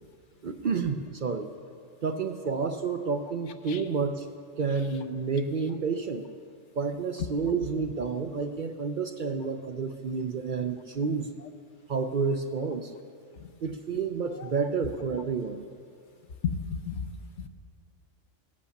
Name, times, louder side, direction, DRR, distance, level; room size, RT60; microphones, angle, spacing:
voice 1, 0.4-1.5 2.0-4.3 4.6-6.3 6.7-11.3 11.9-12.9 13.6-15.6, right 5 dB, 50° right, 7 dB, 0.6 m, -30 dB
voice 2, 16.4-17.1 17.4-17.5, left 6 dB, 70° left, 9 dB, 1.0 m, -32 dB
18.0 x 8.4 x 7.1 m, 2.3 s
omnidirectional pair, 1.3 m